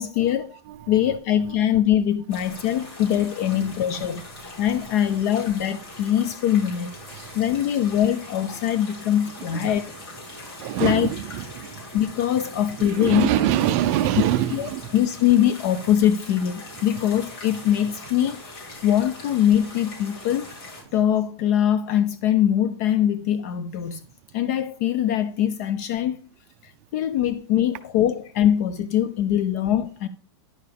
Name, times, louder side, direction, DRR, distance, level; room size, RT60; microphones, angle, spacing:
voice 1, 0.0-0.6 0.9-4.2 4.6-6.9 7.3-9.9 10.8-11.1 11.9-13.3 14.5-20.5 20.9-24.0 24.3-26.2 26.6-30.1, left 10 dB, 35° left, 0.4 m, -22 dB
voice 2, 0.7-1.2 1.5-1.6 2.5-2.9 3.2-3.3 3.5-3.7 4.7-4.8 7.1-7.4 9.5-9.7 10.3-12.0 12.8-15.0 20.9-21.0, right 12 dB, 35° right, 0.5 m, -26 dB
sound 1, 2.3-20.8, left 2 dB, 60° left, 4.1 m, -41 dB
10.5 x 6.7 x 3.5 m
supercardioid pair, 170°, 14 cm